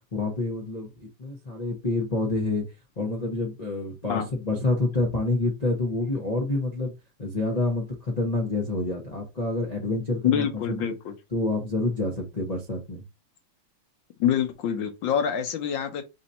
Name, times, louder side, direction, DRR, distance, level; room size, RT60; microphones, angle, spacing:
voice 1, 0.1-2.6 3.0-6.9 7.2-10.9 11.3-13.0, left 2 dB, 85° left, 0.3 m, -28 dB
voice 2, 10.2-11.1 14.2-16.0, left 9 dB, 65° left, 1.4 m, -26 dB
4.0 x 2.7 x 4.2 m
omnidirectional pair, 2.4 m